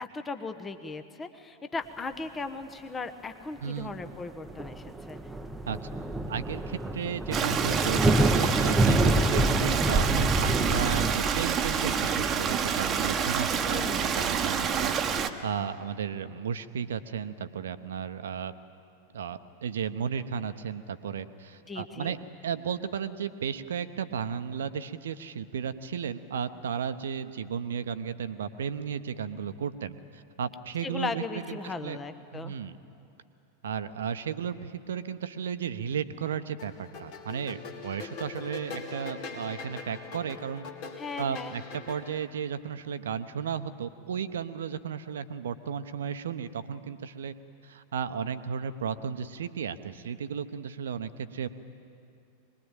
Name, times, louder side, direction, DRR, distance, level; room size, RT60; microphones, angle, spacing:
voice 1, 0.0-5.2 13.6-14.1 21.7-22.1 30.8-32.6 41.0-41.6, left 4 dB, 15° left, 9 dB, 1.2 m, -37 dB
sound 1, 4.0-4.1 4.5-11.1, right 1 dB, 5° right, 1.0 m, -27 dB
voice 2, 6.3-18.5 19.1-22.2 22.4-32.0 32.3-32.8 33.6-40.6 41.2-47.3 47.6-51.5, right 7 dB, 65° right, 11 dB, 1.0 m, -34 dB
Stream, 7.3-15.3, right 6 dB, 25° right, 1.2 m, -27 dB
sound 2, 36.6-42.2, left 5 dB, 45° left, 2.5 m, -42 dB
23.5 x 20.5 x 8.9 m, 2.6 s
figure-of-eight pair, 90°, 0 cm